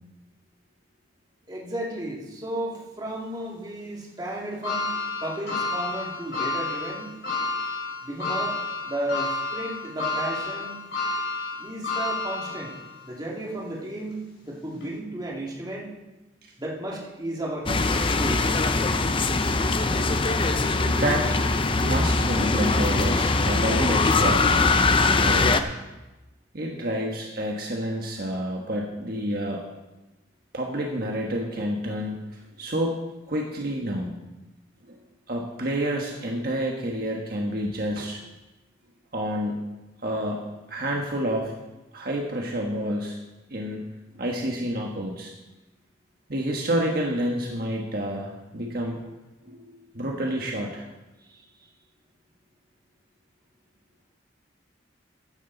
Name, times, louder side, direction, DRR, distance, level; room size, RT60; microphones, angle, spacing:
voice 1, 1.5-7.1 8.0-10.8 11.6-12.7 13.0-15.9 16.6-18.5 51.3-51.4, right 1 dB, 20° right, -3 dB, 2.4 m, -34 dB
sound 1, 4.6-13.0 13.5-13.6 14.7-14.8, left 3 dB, 70° left, 4.7 m, -30 dB
sound 2, 17.7-25.6, left 3 dB, 30° left, 0.6 m, -22 dB
voice 2, 20.8-21.4 21.8-24.5 25.2-25.5 26.5-29.6 30.5-33.0 33.3-34.2 34.8-35.0 35.3-38.2 39.1-39.6 40.0-40.4 40.7-41.5 41.9-43.2 43.5-43.8 44.1-45.3 46.3-49.0 49.4-49.6 49.9-50.8, equal, 55° right, 0 dB, 1.4 m, -29 dB
14.0 x 10.0 x 4.0 m, 1.1 s
head